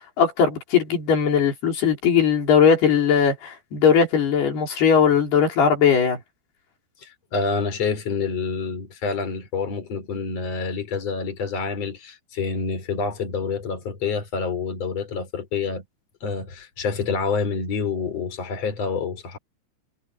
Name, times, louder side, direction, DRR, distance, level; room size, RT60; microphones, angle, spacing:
voice 1, 0.2-6.2, left 7 dB, 75° left, 6.0 m, -19 dB
voice 2, 7.0-15.8 16.2-19.4, left 5 dB, 40° left, 5.6 m, -27 dB
omnidirectional pair, 4.6 m